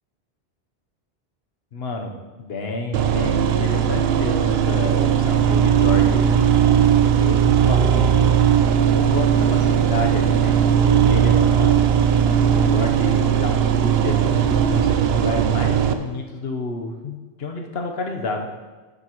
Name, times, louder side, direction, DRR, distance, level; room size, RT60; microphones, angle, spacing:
voice 1, 1.7-2.1 2.4-6.4 7.0-8.3 8.9-11.8 12.5-18.5, left 3 dB, 70° left, 3 dB, 1.1 m, -29 dB
sound 1, 2.9-15.9, right 8 dB, 70° right, 0.8 m, -18 dB
11.0 x 6.8 x 3.0 m, 1.3 s
omnidirectional pair, 1.1 m